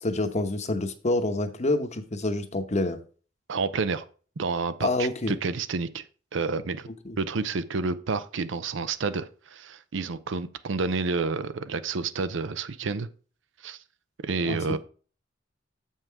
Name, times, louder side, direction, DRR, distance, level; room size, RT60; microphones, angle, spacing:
voice 1, 0.0-3.0 4.8-5.4 7.0-7.2 14.4-14.8, left 2 dB, 35° left, 0.9 m, -27 dB
voice 2, 3.5-4.0 4.4-6.1 6.3-6.9 7.2-13.1 13.6-13.8 14.2-14.8, right 4 dB, 70° right, 0.6 m, -29 dB
7.3 x 5.6 x 4.6 m
head